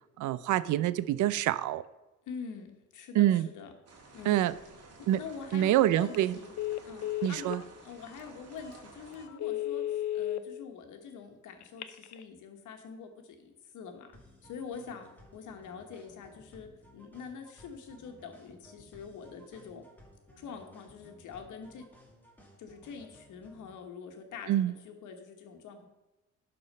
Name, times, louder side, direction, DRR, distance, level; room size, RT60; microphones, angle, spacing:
voice 1, 0.2-1.8 3.2-3.5 4.3-4.5 5.1-5.2 5.5-6.4 7.2-7.6 24.5-24.7, right 13 dB, 80° right, 16 dB, 0.5 m, -26 dB
voice 2, 2.3-3.7 4.1-4.4 5.0-6.5 6.8-7.5 7.8-19.8 20.4-21.9 22.6-25.9, left 6 dB, 80° left, 5 dB, 1.4 m, -45 dB
sound 1, 3.9-9.3, right 3 dB, 55° right, 2.1 m, -54 dB
Telephone, 6.0-6.2 6.6-7.6 8.2-8.3 8.7-8.8 9.3-10.4 11.6-12.2, left 13 dB, 65° left, 0.7 m, -34 dB
sound 2, 14.1-23.7, equal, 5° left, 2.2 m, -57 dB
11.5 x 4.3 x 5.4 m, 1.0 s
cardioid pair, 90°, 30 cm